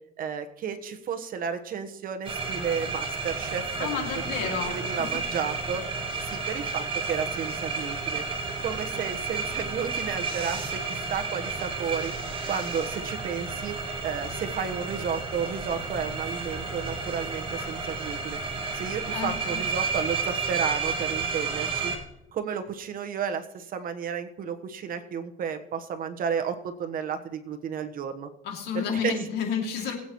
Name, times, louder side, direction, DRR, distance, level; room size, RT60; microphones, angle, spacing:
voice 1, 0.2-4.1 4.4-5.9 6.2-8.2 8.6-12.1 12.5-13.8 14.0-18.4 18.7-21.9 22.3-28.3 28.7-29.2 29.8-29.9, right 7 dB, 55° right, 8 dB, 1.2 m, -32 dB
sound 1, 2.2-22.0, right 4 dB, 30° right, 2.0 m, -32 dB
voice 2, 3.8-5.1 19.1-19.6 28.4-29.9, left 7 dB, 80° left, 2 dB, 2.6 m, -31 dB
20.5 x 8.6 x 3.1 m, 0.87 s
cardioid pair, 110°, 17 cm